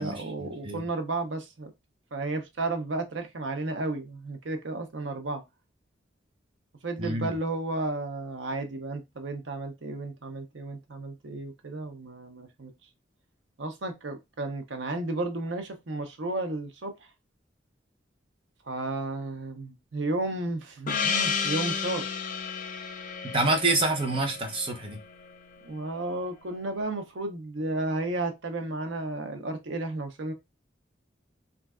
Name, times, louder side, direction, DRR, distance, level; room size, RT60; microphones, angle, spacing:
voice 1, 0.0-1.7 2.1-5.4 6.8-12.7 13.6-16.9 18.7-22.1 25.6-30.3, right 2 dB, 90° right, 0.7 m, -33 dB
voice 2, 7.0-7.3 23.3-25.0, right 2 dB, 30° right, 0.8 m, -26 dB
Gong, 20.9-25.6, left 6 dB, 45° left, 0.5 m, -32 dB
3.2 x 2.5 x 2.3 m
head